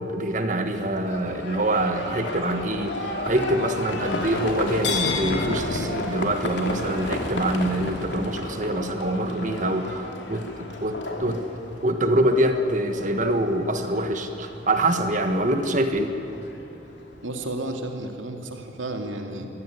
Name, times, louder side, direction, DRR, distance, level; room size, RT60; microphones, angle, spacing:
voice 1, 0.0-11.4 11.8-16.1, right 1 dB, 40° right, 7 dB, 1.6 m, -25 dB
Livestock farm animals working animals, 0.8-17.2, left 2 dB, 65° left, 2.6 m, -33 dB
sound 1, 3.4-7.6, left 3 dB, 45° left, 0.5 m, -35 dB
voice 2, 17.2-19.5, right 1 dB, 90° right, 4 dB, 2.6 m, -32 dB
23.0 x 15.5 x 9.6 m, 2.6 s
head